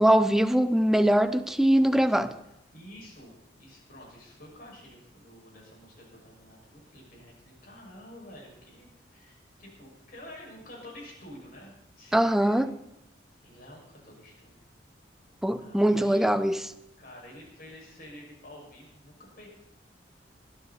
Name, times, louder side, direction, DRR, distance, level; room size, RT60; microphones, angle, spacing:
voice 1, 0.0-2.3 12.1-12.7 15.4-16.7, right 1 dB, ahead, 0.7 m, -22 dB
voice 2, 2.7-11.7 12.0-12.6 13.4-14.6 15.6-16.3 17.0-19.5, left 1 dB, 55° left, 6.1 m, -49 dB
20.0 x 13.0 x 4.2 m
head